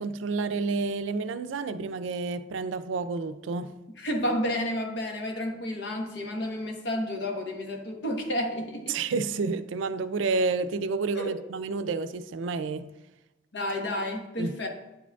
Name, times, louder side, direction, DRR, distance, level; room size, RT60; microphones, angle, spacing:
voice 1, 0.0-3.7 8.9-12.9 14.4-14.5, right 4 dB, 85° right, 12 dB, 0.4 m, -30 dB
voice 2, 4.0-9.0 11.1-11.3 13.5-14.7, left 1 dB, 65° left, 2 dB, 1.0 m, -31 dB
8.8 x 4.9 x 2.3 m, 1.0 s
head